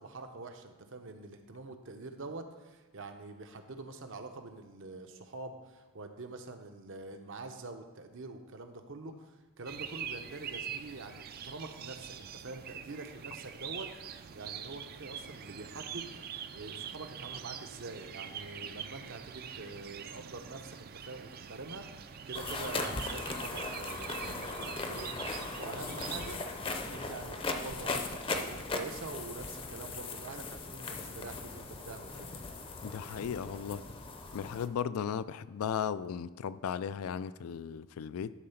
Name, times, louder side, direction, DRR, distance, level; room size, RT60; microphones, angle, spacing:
voice 1, 0.0-16.1 16.5-25.1 25.6-26.4 26.8-32.3, right 3 dB, 60° right, 6 dB, 0.8 m, -45 dB
sound 1, 9.7-26.4, right 8 dB, 45° right, 0.4 m, -44 dB
sound 2, 22.3-34.7, left 3 dB, 25° left, 0.6 m, -38 dB
voice 2, 32.8-33.8 34.3-38.3, left 8 dB, 85° left, 15 dB, 0.3 m, -36 dB
11.5 x 3.8 x 5.7 m, 1.2 s
head